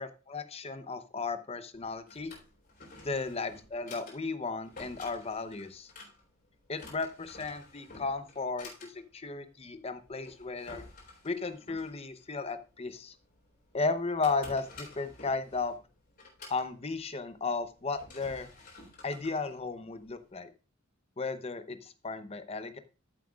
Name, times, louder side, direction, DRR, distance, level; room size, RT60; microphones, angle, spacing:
voice 1, 0.0-2.3 3.0-5.9 6.7-10.8 11.2-13.1 13.7-15.7 16.5-18.5 19.0-20.5 21.2-22.8, left 4 dB, 30° left, 10 dB, 0.7 m, -35 dB
Drawer open or close, 1.7-20.3, left 3 dB, 50° left, 3.8 m, -52 dB
13.5 x 7.7 x 2.4 m, 0.31 s
head